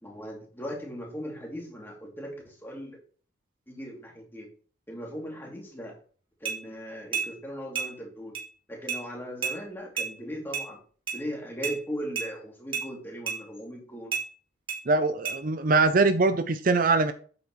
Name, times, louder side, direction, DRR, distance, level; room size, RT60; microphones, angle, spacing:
voice 1, 0.0-3.0 3.7-4.5 4.9-6.0 6.4-8.3 8.7-10.8 11.1-14.1, equal, 10° left, -2 dB, 2.7 m, -38 dB
sound 1, 6.4-6.6 7.1-7.3 7.7-7.9 8.3-8.5 8.9-9.0 9.4-9.6 10.0-10.1 10.5-10.7 11.1-11.2 11.6-11.8 12.2-12.3 12.7-12.9 13.3-13.4 14.1-14.3 14.7-14.8 15.2-15.4, right 7 dB, 25° right, 2.0 m, -30 dB
voice 2, 14.9-17.1, right 3 dB, 45° right, 10 dB, 0.5 m, -22 dB
8.7 x 8.0 x 3.1 m, 0.43 s
head